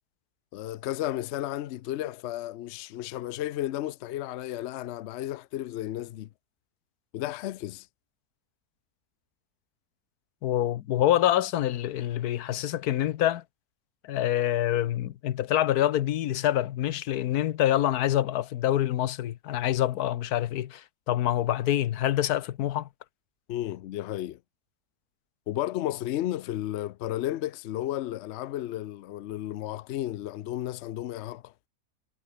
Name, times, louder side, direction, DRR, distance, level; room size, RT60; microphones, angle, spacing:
voice 1, 0.5-6.3 7.1-7.9 23.5-24.4 25.5-31.5, left 13 dB, 65° left, 0.7 m, -33 dB
voice 2, 10.4-13.4 14.0-22.9, left 12 dB, 80° left, 1.3 m, -26 dB
omnidirectional pair, 1.6 m